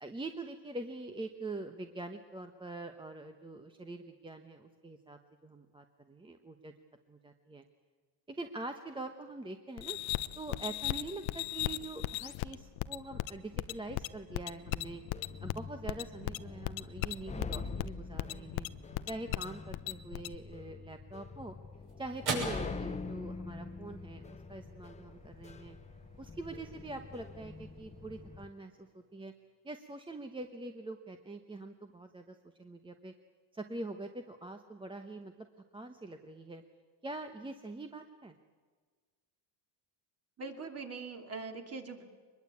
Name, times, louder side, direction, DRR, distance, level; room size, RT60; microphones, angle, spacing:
voice 1, 0.0-6.7 7.1-7.6 8.3-10.0 10.3-15.0 15.4-18.7 19.0-21.5 22.0-24.2 24.5-25.8 26.2-29.3 29.6-33.1 33.5-35.5 35.7-36.6 37.0-38.4, right 2 dB, 10° right, 6 dB, 1.0 m, -44 dB
sound 1, 9.8-20.4, left 17 dB, 85° left, 0.9 m, -37 dB
sound 2, 14.8-28.5, left 4 dB, 15° left, 0.7 m, -45 dB
Switch.Big.Power, 21.0-29.5, right 4 dB, 55° right, 6.6 m, -45 dB
voice 2, 40.4-42.0, right 4 dB, 30° right, 5 dB, 2.8 m, -42 dB
23.5 x 21.5 x 8.4 m, 1.5 s
cardioid pair, 130°, 45 cm